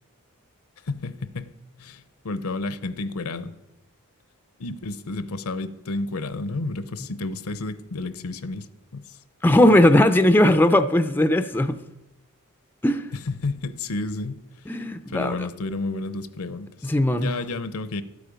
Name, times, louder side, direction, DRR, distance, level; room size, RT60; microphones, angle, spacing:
voice 1, 0.8-1.5 1.8-3.5 4.6-8.7 8.9-9.0 9.7-9.8 13.1-14.7 15.1-18.0, left 3 dB, 70° left, 14 dB, 0.7 m, -31 dB
voice 2, 9.4-11.8 12.8-13.1 14.7-15.3 16.8-17.3, left 1 dB, 10° left, 9 dB, 0.4 m, -18 dB
12.0 x 8.5 x 5.1 m, 0.98 s
head